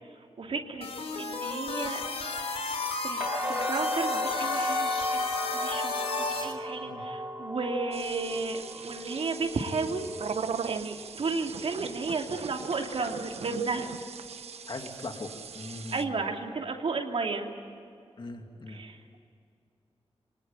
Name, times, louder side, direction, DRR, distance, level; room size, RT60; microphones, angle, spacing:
voice 1, 0.4-0.9 1.2-2.0 3.0-5.1 5.5-10.1 10.6-13.9 15.9-17.5 18.7-19.2, right 4 dB, 65° right, 2 dB, 2.8 m, -33 dB
sound 1, 0.8-6.5, left 4 dB, 80° left, 3.6 m, -33 dB
sound 2, 3.2-11.1 11.5-12.1, left 1 dB, 15° right, 1.6 m, -34 dB
sound 3, 7.9-16.0, right 6 dB, 80° right, 1.2 m, -40 dB
voice 2, 14.7-15.3 15.5-16.1 18.2-18.8, left 2 dB, 50° left, 4 dB, 2.6 m, -40 dB
25.5 x 19.5 x 9.0 m, 2.4 s
wide cardioid pair, 105°, 10 cm